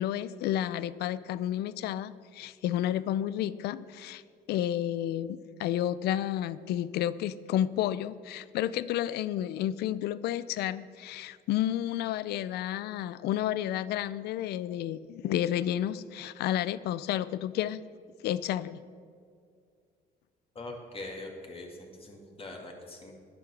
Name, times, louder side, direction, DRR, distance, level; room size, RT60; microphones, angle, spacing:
voice 1, 0.0-4.2 4.5-17.8 18.2-18.8, left 12 dB, 75° left, 17 dB, 0.5 m, -31 dB
voice 2, 20.6-23.1, left 2 dB, 35° left, 1 dB, 2.2 m, -42 dB
10.5 x 9.8 x 6.3 m, 2.2 s
cardioid pair, 110°, 17 cm